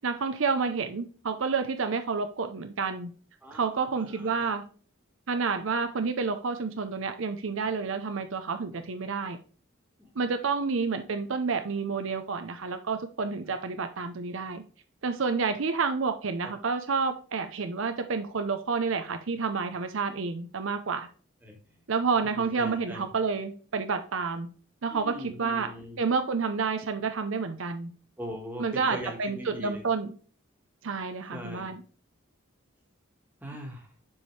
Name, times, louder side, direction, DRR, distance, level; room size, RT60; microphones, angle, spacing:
voice 1, 0.0-3.1 3.5-4.6 5.3-9.4 10.2-14.6 15.0-21.1 21.9-24.5 24.8-25.7 26.0-27.9 28.6-30.1 30.8-31.8, right 5 dB, 70° right, 8 dB, 0.6 m, -29 dB
voice 2, 3.4-4.6 8.7-8.8 10.0-10.1 16.4-16.5 21.4-21.9 22.2-23.1 24.9-26.0 28.2-29.8 31.3-31.7 33.4-33.9, equal, 10° right, 0 dB, 1.5 m, -41 dB
7.1 x 4.8 x 3.1 m, 0.40 s
head